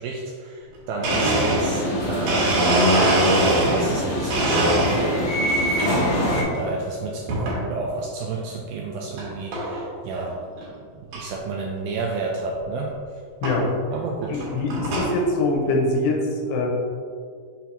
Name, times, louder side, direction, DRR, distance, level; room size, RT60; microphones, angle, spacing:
voice 1, 0.0-2.7 3.4-10.4 10.8-13.0 13.9-14.4, right 3 dB, 85° right, -1 dB, 2.1 m, -31 dB
Domestic sounds home sounds, 0.7-0.8 1.0-4.0 4.3-5.3 5.8-6.3 7.3-7.6 8.2-8.3 9.2-9.3 9.5-9.9 10.3-10.4 10.6-10.7 11.1-11.2 12.5-12.6 13.4-13.6 14.2-15.2, right 1 dB, 65° right, 2.9 m, -22 dB
sound 1, 1.0-6.4, equal, 50° left, 1.9 m, -25 dB
voice 2, 14.3-16.7, left 2 dB, 90° left, -1 dB, 3.0 m, -23 dB
6.9 x 5.9 x 2.8 m, 2.1 s
omnidirectional pair, 4.7 m